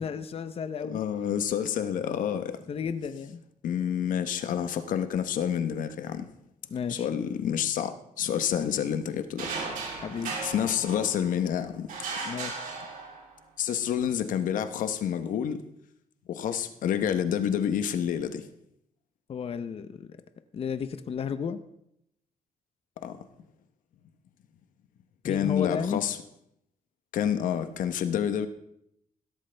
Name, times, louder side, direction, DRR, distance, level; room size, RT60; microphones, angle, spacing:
voice 1, 0.0-1.0 2.7-3.4 6.7-7.1 10.0-10.3 12.2-12.6 19.3-20.1 20.5-21.6 25.2-26.0, left 6 dB, 45° left, 0.7 m, -33 dB
voice 2, 0.9-2.6 3.6-6.3 6.9-9.5 10.4-12.1 13.6-15.6 16.3-18.5 23.0-23.2 25.2-26.2 27.1-28.5, left 9 dB, 85° left, 0.9 m, -28 dB
sound 1, 9.4-11.4 11.9-13.4, right 4 dB, 85° right, 3.2 m, -36 dB
15.5 x 13.0 x 3.4 m
cardioid pair, 110°, 13 cm